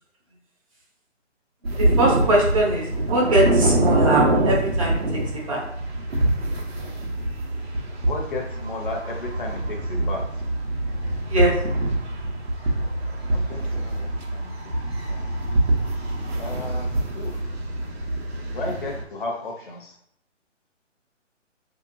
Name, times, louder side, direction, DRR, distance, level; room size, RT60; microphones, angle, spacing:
sound 1, 1.6-19.0, right 1 dB, 55° right, 1.0 m, -25 dB
voice 1, 1.8-5.0 5.5-5.6 11.3-11.5, right 1 dB, 30° right, -3 dB, 0.9 m, -21 dB
voice 2, 8.1-10.2 13.3-14.5 15.1-15.2 16.4-17.5 18.5-19.9, left 2 dB, 45° left, 1 dB, 0.8 m, -34 dB
4.9 x 2.9 x 2.5 m, 0.73 s
hypercardioid pair, 160°, 37 cm